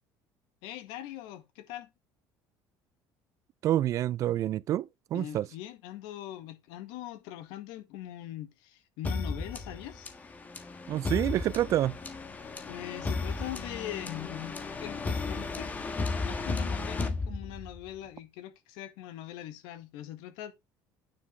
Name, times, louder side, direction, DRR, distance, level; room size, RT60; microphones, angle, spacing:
voice 1, 0.6-1.9 5.1-10.1 12.7-15.7 16.0-20.5, left 13 dB, 85° left, 1.7 m, -42 dB
voice 2, 3.6-5.5 10.9-12.0, right 12 dB, 45° right, 0.5 m, -28 dB
sound 1, 9.0-17.9, left 3 dB, 20° left, 1.4 m, -34 dB
9.8 x 6.0 x 4.4 m
cardioid pair, 150°, 8 cm